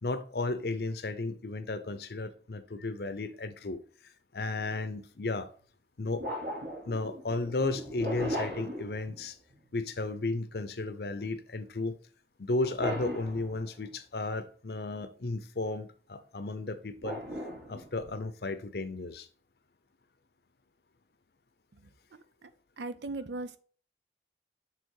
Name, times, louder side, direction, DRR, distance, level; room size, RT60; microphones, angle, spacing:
voice 1, 0.0-3.8 4.3-5.5 6.0-6.2 6.9-9.4 9.7-12.0 12.4-17.2 17.7-19.3, left 2 dB, 65° left, 0.7 m, -34 dB
sound 1, 4.6-4.8 6.2-9.6 12.6-14.0 17.0-18.2, equal, 65° right, 2.3 m, -38 dB
voice 2, 22.1-22.5 22.8-23.6, right 2 dB, 80° right, 0.6 m, -39 dB
6.7 x 3.6 x 4.8 m
head